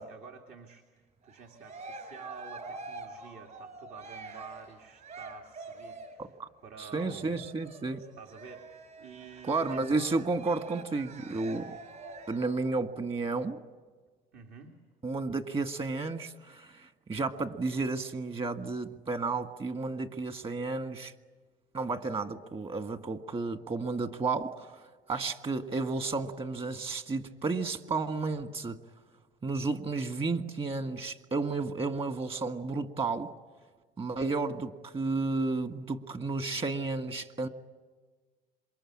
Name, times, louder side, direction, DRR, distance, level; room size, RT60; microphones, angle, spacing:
voice 1, 0.0-6.3 6.6-7.5 8.0-8.7 9.0-10.4 14.3-14.8, right 5 dB, 65° right, 3 dB, 2.4 m, -49 dB
Cheering, 1.2-6.3 7.0-12.6, right 3 dB, 50° right, 6.1 m, -46 dB
voice 2, 6.8-8.0 9.5-11.7 12.3-13.6 15.0-21.1 21.7-24.8 25.1-28.8 29.4-33.3 34.0-37.5, right 3 dB, 35° right, 9 dB, 1.7 m, -32 dB
27.0 x 23.5 x 8.7 m, 1.4 s
cardioid pair, 110°, 17 cm